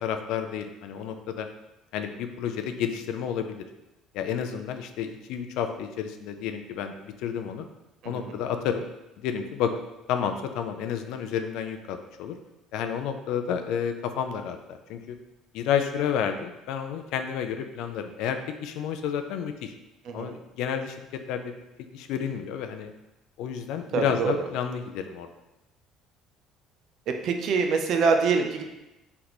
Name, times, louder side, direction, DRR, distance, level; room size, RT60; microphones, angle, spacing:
voice 1, 0.0-1.5 1.9-3.6 4.1-7.6 8.0-8.8 9.2-9.7 10.1-12.3 12.7-15.2 15.5-19.7 20.1-21.5 21.9-22.9 23.4-25.3, left 8 dB, 70° left, 7 dB, 0.3 m, -30 dB
voice 2, 8.0-8.3 20.1-20.3 23.9-24.4 27.2-28.6, right 5 dB, 45° right, 5 dB, 0.4 m, -25 dB
4.0 x 3.3 x 2.9 m, 0.97 s
cardioid pair, 170°, 0 cm